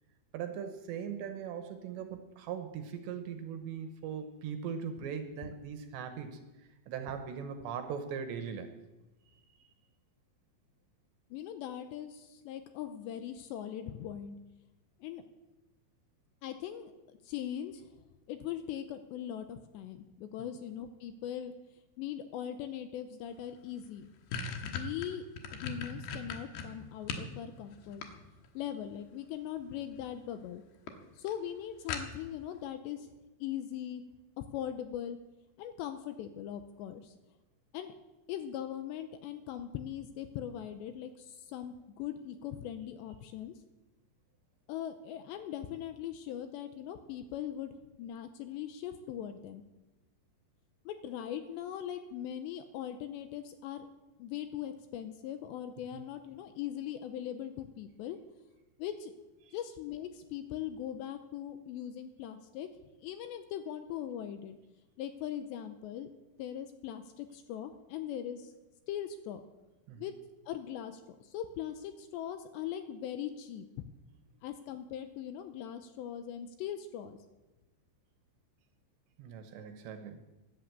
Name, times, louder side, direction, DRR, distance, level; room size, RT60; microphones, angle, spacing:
voice 1, 0.3-6.4 6.9-8.7 9.3-9.4 55.9-56.0 59.4-59.5 69.9-70.1 79.2-80.2, right 7 dB, 75° right, 7 dB, 3.1 m, -40 dB
voice 2, 11.3-14.4 15.0-15.2 16.4-16.9 17.2-17.9 18.3-21.5 22.0-24.1 24.6-25.3 25.5-28.0 28.5-30.6 31.2-33.1 33.4-34.0 34.4-35.2 35.6-37.1 37.7-37.9 38.3-43.6 44.7-49.6 50.9-53.9 54.2-58.2 58.8-59.1 59.5-62.7 63.0-64.6 65.0-66.1 66.4-68.5 68.9-69.4 70.0-70.1 70.5-73.9 74.4-77.2, left 10 dB, 85° left, 9 dB, 2.7 m, -40 dB
sound 1, 23.4-23.5 23.8-27.3 27.7-28.6 29.7-30.1 30.4-30.5 30.9-31.0 31.3-31.4 31.9-32.4, left 5 dB, 65° left, 2.8 m, -39 dB
13.0 x 11.0 x 8.1 m, 1.1 s
omnidirectional pair, 5.6 m